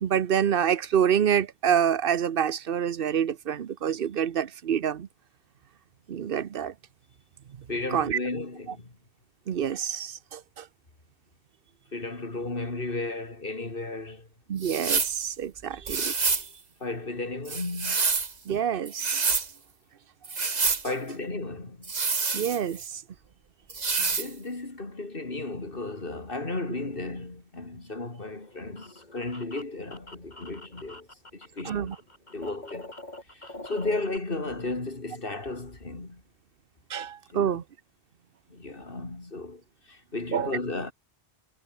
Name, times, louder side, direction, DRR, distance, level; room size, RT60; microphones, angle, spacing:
voice 1, 0.0-5.1 6.1-6.7 7.6-8.2 9.5-10.7 14.5-16.1 18.5-19.5 22.3-23.0 31.6-32.0 36.9-37.6 40.3-40.5, right 8 dB, 65° right, 1.0 m, -27 dB
voice 2, 7.7-8.9 11.9-14.3 16.8-18.0 20.8-21.9 24.0-31.1 31.3-32.0 32.3-32.9 33.3-36.2 37.3-37.6 38.5-39.6 39.9-40.9, left 2 dB, 60° left, 3.4 m, -34 dB
sound 1, 14.6-15.2 15.9-16.5 17.5-18.3 18.9-19.5 20.2-20.8 21.8-22.9 23.7-24.3, right 4 dB, 45° right, 1.4 m, -27 dB
sound 2, 28.2-31.6 31.9-34.2, left 1 dB, 45° left, 4.3 m, -45 dB
omnidirectional pair, 1.0 m